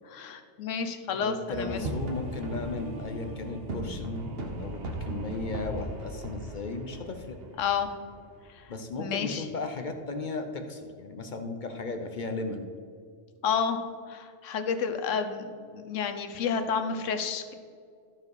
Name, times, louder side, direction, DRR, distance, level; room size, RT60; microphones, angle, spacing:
voice 1, 0.0-1.9 7.6-7.9 9.0-9.5 13.4-13.8 14.1-17.5, left 6 dB, 85° left, 8 dB, 1.1 m, -30 dB
voice 2, 1.1-7.4 8.7-12.7, left 3 dB, 50° left, 6 dB, 0.7 m, -36 dB
sound 1, 1.5-9.0, right 1 dB, 55° right, 1.3 m, -38 dB
13.5 x 4.8 x 4.7 m, 2.2 s
omnidirectional pair, 1.3 m